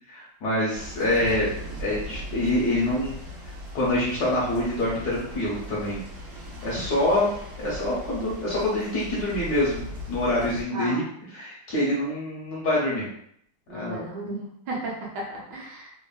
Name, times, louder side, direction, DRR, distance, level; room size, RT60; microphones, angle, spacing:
voice 1, 0.1-1.5 1.8-3.1 3.4-6.0 6.6-7.3 7.6-11.0 11.3-13.1 13.7-14.0, left 1 dB, 65° left, -6 dB, 1.0 m, -26 dB
sound 1, 0.7-10.6, equal, 85° right, 0.7 m, -39 dB
voice 2, 10.7-11.0 13.7-15.9, right 2 dB, 70° right, -3 dB, 1.3 m, -34 dB
3.3 x 2.0 x 2.3 m, 0.70 s
omnidirectional pair, 2.2 m